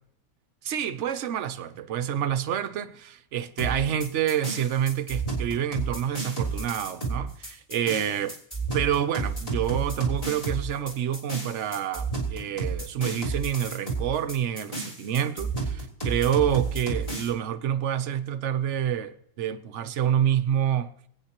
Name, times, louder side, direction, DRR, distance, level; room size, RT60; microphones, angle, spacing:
voice 1, 0.6-8.4 8.7-20.9, right 9 dB, 60° right, 0.9 m, -28 dB
sound 1, 3.6-17.3, right 3 dB, 25° left, 3.5 m, -31 dB
26.0 x 8.8 x 2.9 m
omnidirectional pair, 1.5 m